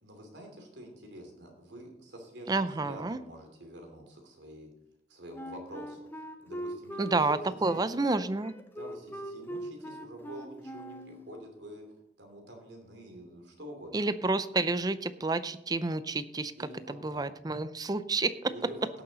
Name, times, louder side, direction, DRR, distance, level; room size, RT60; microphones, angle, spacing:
voice 1, 0.0-4.7 5.1-7.8 8.7-11.8 12.2-14.1 16.6-17.3 18.4-18.9, right 1 dB, 90° right, 3 dB, 2.9 m, -47 dB
voice 2, 2.5-3.2 7.0-8.5 13.9-16.5 16.9-18.5, right 3 dB, 25° right, 14 dB, 0.5 m, -29 dB
Wind instrument woodwind instrument, 5.3-11.2, equal, 15° left, 0.8 m, -41 dB
17.0 x 6.7 x 4.0 m, 0.82 s
head